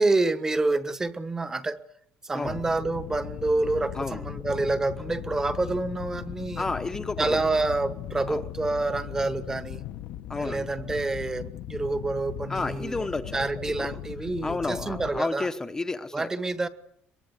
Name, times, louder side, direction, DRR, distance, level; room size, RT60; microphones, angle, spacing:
voice 1, 0.0-1.8 2.2-6.6 7.2-9.8 10.4-13.0 13.3-15.5 16.1-16.7, right 2 dB, 15° right, 1.2 m, -27 dB
sound 1, 2.4-15.2, left 12 dB, 70° left, 1.0 m, -38 dB
voice 2, 6.6-7.4 8.3-8.4 10.3-10.7 12.5-13.4 13.8-14.0 14.4-16.3, left 3 dB, 15° left, 0.9 m, -31 dB
23.0 x 22.0 x 8.2 m
cardioid pair, 160°, 4 cm